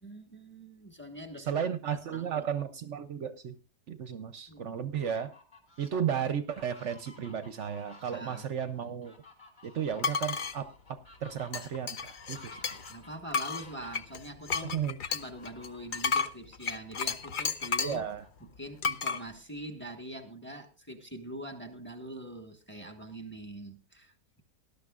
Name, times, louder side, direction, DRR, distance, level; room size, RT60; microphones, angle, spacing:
voice 1, 0.0-1.6 1.9-2.5 4.5-4.8 8.1-8.4 12.5-12.6 12.9-14.8 15.1-18.1 18.4-24.4, right 1 dB, 10° left, 5 dB, 1.3 m, -44 dB
voice 2, 1.5-3.5 3.9-5.3 5.8-9.1 9.6-10.7 11.2-12.8 14.7-15.0 17.8-18.2, right 8 dB, 60° right, 12 dB, 0.9 m, -34 dB
Fowl, 4.8-5.9 6.4-14.1 15.1-16.2 16.6-16.7 17.1-18.8, left 3 dB, 30° left, 2.7 m, -55 dB
sound 1, 10.0-10.6 11.5-13.0 13.3-18.0 18.8-19.2, left 5 dB, 65° left, 0.5 m, -32 dB
19.0 x 11.5 x 2.4 m, 0.33 s
omnidirectional pair, 1.7 m